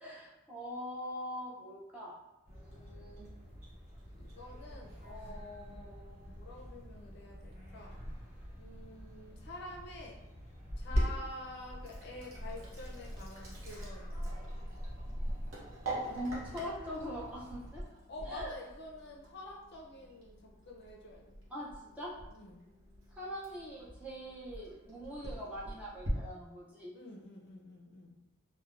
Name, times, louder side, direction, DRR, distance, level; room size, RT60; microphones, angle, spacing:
voice 1, 0.0-2.2 2.5-3.3 15.9-17.8 18.3-18.5 21.5-21.7 22.0-22.1 23.1-27.0, equal, 5° right, -7 dB, 0.4 m, -42 dB
sound 1, 2.4-17.7, equal, 35° right, 1.3 m, -46 dB
voice 2, 4.2-8.0 8.6-10.2 10.8-14.3 18.1-21.4 22.3-22.6 26.9-28.2, left 1 dB, 50° left, -1 dB, 0.5 m, -48 dB
Sink (filling or washing), 10.7-26.1, equal, 70° right, 0.7 m, -42 dB
3.1 x 2.1 x 2.4 m, 0.95 s
head